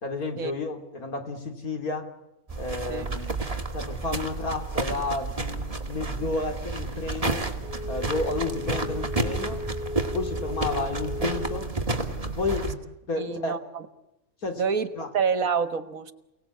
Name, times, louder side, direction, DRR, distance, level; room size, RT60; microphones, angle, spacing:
voice 1, 0.0-2.1 2.6-3.4 3.7-7.5 7.9-9.6 10.1-11.7 12.4-12.7 13.1-13.6 14.4-14.6 14.9-15.1, left 3 dB, 80° left, 5 dB, 3.6 m, -31 dB
sound 1, 2.5-12.8, right 3 dB, 25° right, 2.2 m, -31 dB
Wind instrument woodwind instrument, 7.6-11.8, left 3 dB, 30° left, 2.2 m, -37 dB
voice 2, 13.2-13.9 14.6-14.9 15.1-16.1, right 6 dB, 70° right, 11 dB, 1.9 m, -27 dB
29.5 x 18.5 x 8.5 m, 0.93 s
omnidirectional pair, 1.5 m